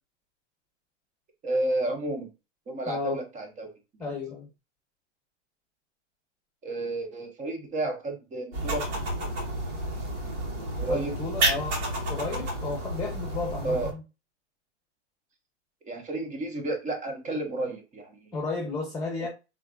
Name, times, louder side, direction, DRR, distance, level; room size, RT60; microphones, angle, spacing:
voice 1, 1.4-2.3 2.7-3.7 6.6-8.9 10.8-11.1 13.6-13.9 15.9-18.3 19.2-19.3, right 2 dB, 20° right, 1.1 m, -31 dB
voice 2, 2.9-3.2 4.0-4.5 10.9-14.0 18.3-19.3, left 3 dB, 10° left, 1.2 m, -33 dB
sound 1, 8.5-13.9, right 1 dB, 75° right, 2.5 m, -30 dB
4.4 x 3.8 x 2.6 m
hypercardioid pair, 130°, 35 cm